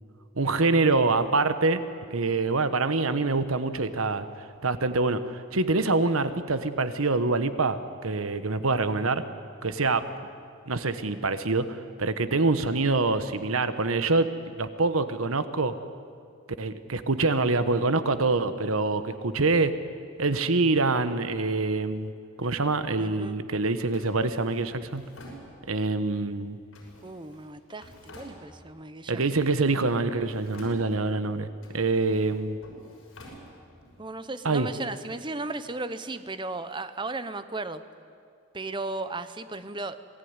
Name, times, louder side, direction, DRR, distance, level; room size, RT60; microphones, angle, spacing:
voice 1, 0.4-1.8 2.1-4.3 4.6-9.2 9.6-10.0 10.7-14.3 14.6-15.7 16.6-19.7 20.2-22.1 22.4-25.0 25.7-26.6 29.1-31.5 31.7-32.6 34.4-34.7, right 3 dB, 85° right, 11 dB, 1.2 m, -25 dB
voice 2, 23.0-23.4 27.0-29.3 34.0-37.8 38.5-40.0, right 2 dB, 20° right, 12 dB, 0.9 m, -35 dB
Drawer open or close, 23.9-26.0 26.7-28.8 29.2-30.0 30.2-31.2 31.6-34.0, equal, 80° left, 6.7 m, -50 dB
26.5 x 18.5 x 9.7 m, 2.3 s
head